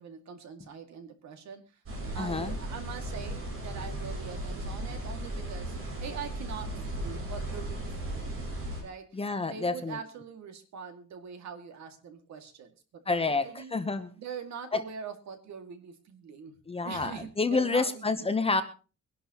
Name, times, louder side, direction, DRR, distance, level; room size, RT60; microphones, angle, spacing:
voice 1, 0.0-1.8 2.1-8.4 8.8-9.2 9.5-13.7 14.2-18.1, right 6 dB, 60° right, 7 dB, 2.2 m, -43 dB
sound 1, 1.9-8.8, right 1 dB, 45° right, 6.2 m, -36 dB
voice 2, 2.2-2.6 9.1-10.0 13.1-14.1 14.7-14.8 16.7-18.6, left 3 dB, 20° left, 10 dB, 0.8 m, -29 dB
23.0 x 11.5 x 3.0 m, 0.33 s
cardioid pair, 160°, 31 cm